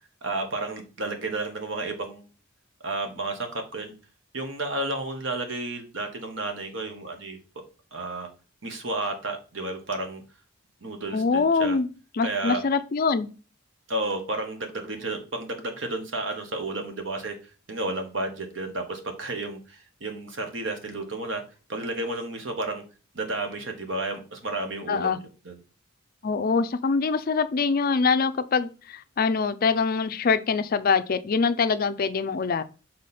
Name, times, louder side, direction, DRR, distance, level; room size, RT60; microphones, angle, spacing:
voice 1, 0.2-2.2 2.8-3.9 4.3-7.4 7.9-8.3 8.6-10.2 10.8-11.8 12.2-12.6 13.9-17.4 17.7-21.4 21.7-22.8 23.1-25.6, right 2 dB, 65° right, 1.3 m, -32 dB
voice 2, 11.1-11.9 12.1-13.3 24.9-25.2 26.2-32.6, left 5 dB, 45° left, 0.4 m, -24 dB
6.3 x 4.1 x 4.2 m
head